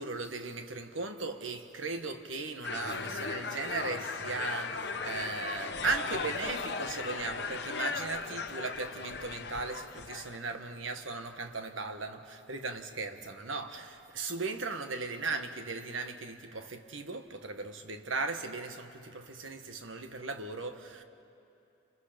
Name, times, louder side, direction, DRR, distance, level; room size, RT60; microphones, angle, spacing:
voice 1, 0.0-21.0, right 3 dB, 75° right, 1.4 m, -37 dB
sound 1, 2.6-10.4, left 4 dB, 55° left, 0.9 m, -37 dB
29.0 x 27.5 x 5.2 m
head